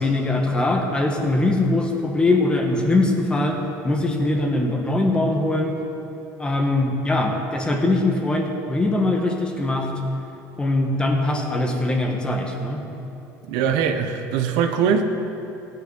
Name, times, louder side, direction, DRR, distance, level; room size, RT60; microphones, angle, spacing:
voice 1, 0.0-5.8 6.4-9.9 10.6-12.8, left 2 dB, 15° left, 2 dB, 1.6 m, -22 dB
voice 2, 13.5-15.0, right 7 dB, 75° right, 6 dB, 1.1 m, -21 dB
16.5 x 9.5 x 5.6 m, 2.8 s
cardioid pair, 135°, 7 cm